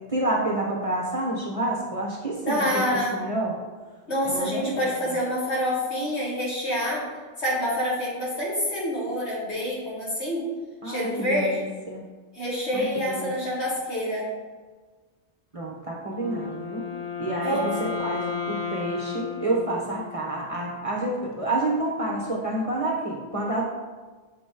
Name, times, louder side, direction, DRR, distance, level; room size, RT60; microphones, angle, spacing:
voice 1, 0.1-3.5 4.2-5.1 10.8-12.0 12.7-13.3 15.5-16.8 17.2-23.6, right 2 dB, 35° right, -3 dB, 0.9 m, -29 dB
voice 2, 2.4-3.2 4.1-7.0 7.4-10.4 10.8-11.7 12.3-14.3 17.3-17.6, equal, 70° left, -7 dB, 2.4 m, -27 dB
Wind instrument woodwind instrument, 16.1-20.4, left 6 dB, 35° left, 0.7 m, -33 dB
6.8 x 3.0 x 5.1 m, 1.3 s
omnidirectional pair, 1.2 m